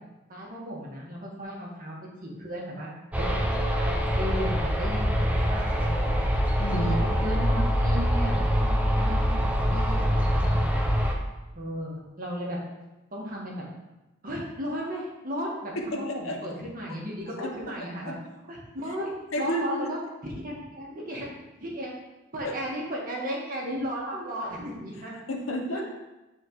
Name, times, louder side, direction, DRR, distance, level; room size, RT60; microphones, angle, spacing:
voice 1, 0.3-1.9 2.2-3.3 3.9-6.2 7.0-10.8 11.5-12.6 13.1-13.7 14.2-18.1 18.4-19.1 19.4-20.0 20.4-21.3 21.6-21.9 22.3-25.1 25.7-25.8, equal, 45° right, -3 dB, 1.6 m, -35 dB
sound 1, 3.1-11.1, equal, 5° right, 0.6 m, -24 dB
voice 2, 6.6-7.0 15.8-16.4 17.4-17.5 18.0-18.2 19.3-19.9 22.4-22.5 25.3-25.8, left 1 dB, 75° left, 2 dB, 0.9 m, -31 dB
9.1 x 4.4 x 3.1 m, 1.0 s
head